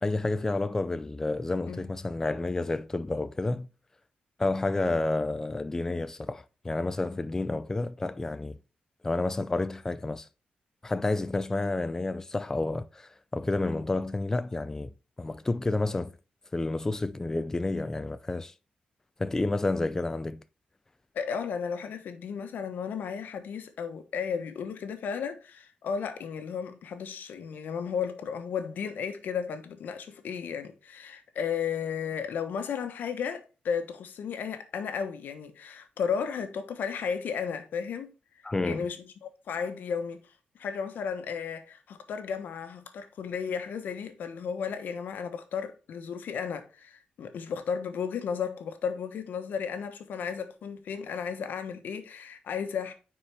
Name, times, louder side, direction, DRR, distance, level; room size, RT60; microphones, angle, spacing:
voice 1, 0.0-3.7 4.4-8.6 9.0-10.3 10.8-14.9 15.2-16.1 16.5-18.5 19.2-20.4 38.4-38.9, left 2 dB, 15° left, 0.4 m, -30 dB
voice 2, 21.1-38.1 38.6-52.9, left 6 dB, 75° left, 1.1 m, -34 dB
9.7 x 4.4 x 3.4 m
wide cardioid pair, 125°, 3 cm